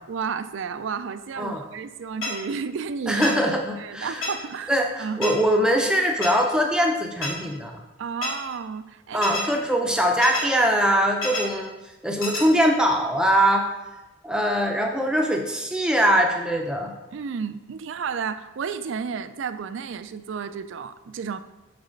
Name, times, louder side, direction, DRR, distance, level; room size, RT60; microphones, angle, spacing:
voice 1, 0.1-3.4 3.8-4.7 5.0-5.3 8.0-9.3 17.1-21.4, right 6 dB, 65° right, 12 dB, 0.4 m, -32 dB
sound 1, 2.2-2.3 3.2-3.3 4.2-4.3 5.2-5.3 6.2-6.3 7.2-7.3 8.2-8.3 9.2-9.4 10.2-10.4 11.2-11.4 12.2-12.4, left 3 dB, 85° left, 2.0 m, -27 dB
voice 2, 3.1-4.2 4.7-7.7 9.1-11.7 12.0-13.7 14.2-16.9, equal, 5° right, 2 dB, 0.5 m, -22 dB
6.0 x 4.1 x 6.3 m, 1.1 s
head